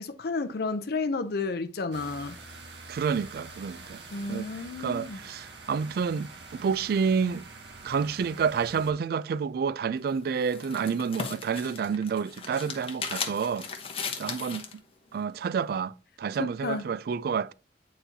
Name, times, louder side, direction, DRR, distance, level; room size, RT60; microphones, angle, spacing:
voice 1, 0.0-2.4 4.1-5.2 16.4-16.8, left 3 dB, 60° left, 0.5 m, -32 dB
sound 1, 1.9-8.9, right 3 dB, 75° right, 1.3 m, -46 dB
voice 2, 2.9-4.0 4.3-4.5 4.8-7.4 7.8-13.7 14.2-14.7 15.1-17.5, right 6 dB, 55° right, 0.3 m, -29 dB
sound 2, 10.0-14.8, left 5 dB, 35° left, 1.0 m, -37 dB
9.0 x 4.2 x 2.7 m
head